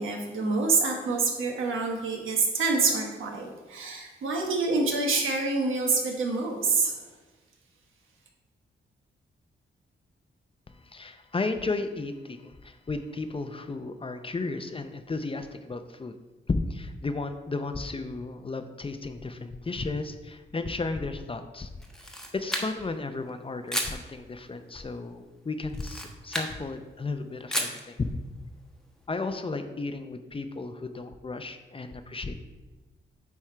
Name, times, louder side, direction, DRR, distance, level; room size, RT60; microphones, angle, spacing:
voice 1, 0.0-6.9, right 3 dB, 90° right, 1 dB, 1.3 m, -27 dB
voice 2, 10.7-16.1 16.5-21.7 22.1-28.1 29.1-32.4, left 3 dB, 25° left, 9 dB, 0.6 m, -34 dB
Camera, 21.8-23.0 23.7-24.0 25.7-26.6 27.5-27.8, equal, 5° left, 1.0 m, -32 dB
9.2 x 3.6 x 4.4 m, 1.2 s
cardioid pair, 90°, 20 cm